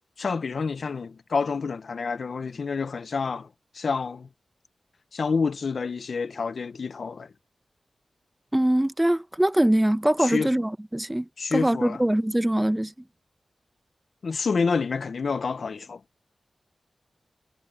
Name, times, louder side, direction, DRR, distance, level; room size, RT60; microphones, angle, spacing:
voice 1, 0.2-3.5 3.7-4.3 5.1-7.3 10.2-10.5 11.4-12.0 14.2-16.0, left 5 dB, 70° left, 0.7 m, -28 dB
voice 2, 8.5-12.9, right 1 dB, 10° right, 0.8 m, -23 dB
wide cardioid pair, 80°, 0 cm